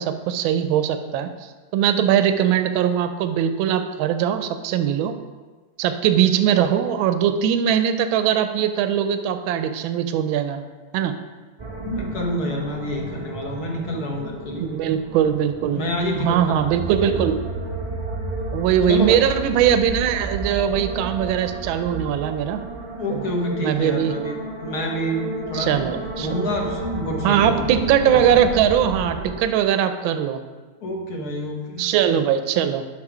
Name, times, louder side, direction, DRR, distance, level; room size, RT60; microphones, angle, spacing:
voice 1, 0.0-5.2 5.8-10.6 10.9-11.2 14.6-15.9 16.2-17.4 18.5-22.6 23.1-23.2 23.6-24.2 25.5-26.3 27.2-30.4 31.8-32.8, right 9 dB, 80° right, 9 dB, 1.4 m, -21 dB
sound 1, 11.6-29.4, right 2 dB, 50° right, 0.3 m, -32 dB
voice 2, 11.8-14.7 15.7-17.2 18.9-19.2 23.0-25.9 26.2-27.6 28.1-28.2 30.8-31.9, equal, 55° left, 0 dB, 1.6 m, -28 dB
12.0 x 4.1 x 4.9 m, 1.3 s
omnidirectional pair, 2.2 m